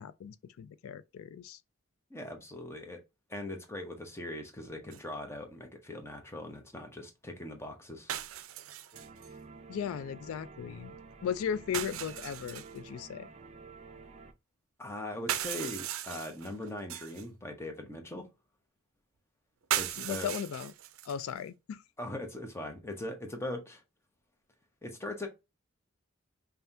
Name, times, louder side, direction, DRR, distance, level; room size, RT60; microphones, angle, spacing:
voice 1, 0.0-1.6 9.7-11.0 11.2-13.3 20.0-20.7 21.0-21.8, left 8 dB, 90° left, 0.3 m, -37 dB
voice 2, 2.1-3.0 3.3-8.1 14.8-18.3 19.7-20.3 22.0-23.8 24.8-25.3, left 1 dB, 10° left, 0.8 m, -40 dB
sound 1, 4.9-5.0 8.1-9.3 11.7-12.8 15.1-17.2 19.7-21.3, right 11 dB, 80° right, 0.4 m, -37 dB
sound 2, 8.9-14.3, right 4 dB, 30° right, 0.5 m, -50 dB
5.4 x 2.3 x 2.7 m
head